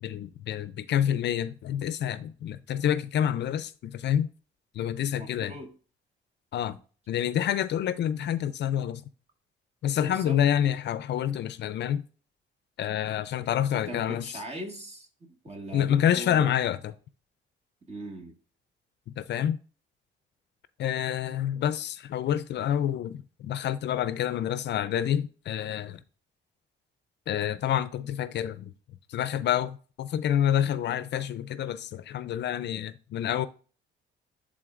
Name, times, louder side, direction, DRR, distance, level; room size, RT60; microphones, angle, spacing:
voice 1, 0.0-4.3 4.7-5.5 6.5-6.8 7.1-9.0 9.8-12.0 12.8-14.3 15.7-16.9 19.2-19.6 20.8-26.0 27.3-28.7 29.1-33.5, left 10 dB, 60° left, 0.4 m, -28 dB
voice 2, 5.1-5.7 10.0-10.4 13.7-16.5 17.9-18.4, right 1 dB, 30° right, 1.7 m, -40 dB
11.0 x 3.8 x 2.5 m
cardioid pair, 90°, 20 cm